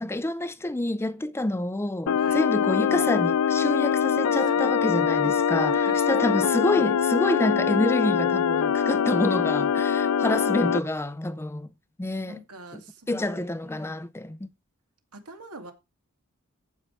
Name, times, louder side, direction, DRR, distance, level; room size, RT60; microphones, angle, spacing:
voice 1, 0.0-11.7 12.0-12.4 12.7-12.8 13.1-14.5, left 1 dB, 10° left, 0.5 m, -28 dB
sound 1, 2.1-10.8, left 7 dB, 70° left, 0.4 m, -23 dB
voice 2, 4.3-4.8 5.2-5.3 5.6-6.3 10.6-11.4 12.3-13.9 15.1-15.7, right 3 dB, 85° right, 2.3 m, -42 dB
14.5 x 5.6 x 4.6 m
head